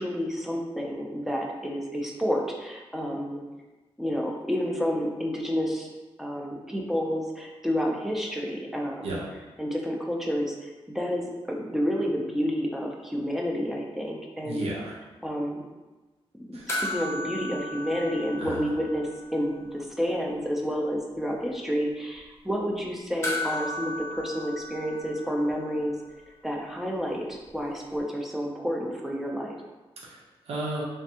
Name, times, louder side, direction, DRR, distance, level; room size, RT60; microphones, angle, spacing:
voice 1, 0.0-3.4 4.0-5.9 6.2-9.2 9.6-14.7 15.2-15.6 16.5-25.9 26.4-29.5, equal, 5° right, -1 dB, 0.5 m, -30 dB
voice 2, 14.4-15.0 16.5-16.7 18.4-18.7 30.0-30.8, right 2 dB, 90° right, -4 dB, 0.8 m, -34 dB
sound 1, 16.7-19.4 19.6-19.7 23.2-25.8 28.0-28.1, left 1 dB, 25° left, 0.8 m, -35 dB
3.3 x 3.2 x 2.8 m, 1.2 s
wide cardioid pair, 130°, 10 cm